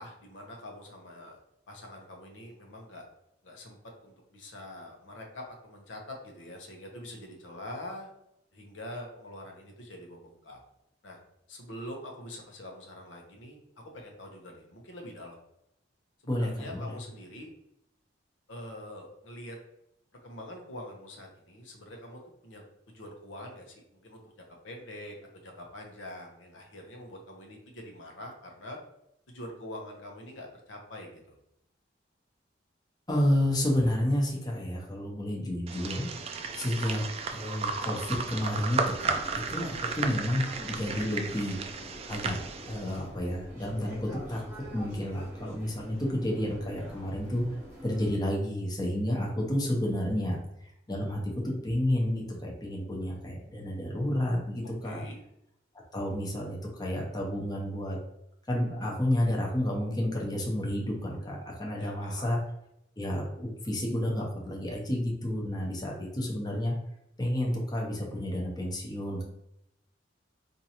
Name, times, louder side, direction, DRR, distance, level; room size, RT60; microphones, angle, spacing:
voice 1, 0.0-1.4 1.7-3.0 3.4-8.1 8.5-10.6 11.0-11.2 11.5-15.4 16.2-17.5 18.5-19.6 20.2-28.8 29.3-31.3 54.8-55.2 61.8-62.4, left 1 dB, 85° left, 1 dB, 0.8 m, -45 dB
voice 2, 16.3-17.0 33.1-36.1 36.5-37.0 37.3-41.6 42.1-47.4 47.8-50.4 50.9-55.0 55.9-58.0 58.5-62.4 63.0-66.7 67.2-69.2, left 1 dB, 20° left, -2 dB, 0.8 m, -30 dB
sound 1, 35.7-43.0, right 5 dB, 35° right, 0.3 m, -34 dB
sound 2, 38.8-48.2, equal, 10° right, 1.1 m, -46 dB
4.4 x 2.6 x 2.8 m, 0.81 s
head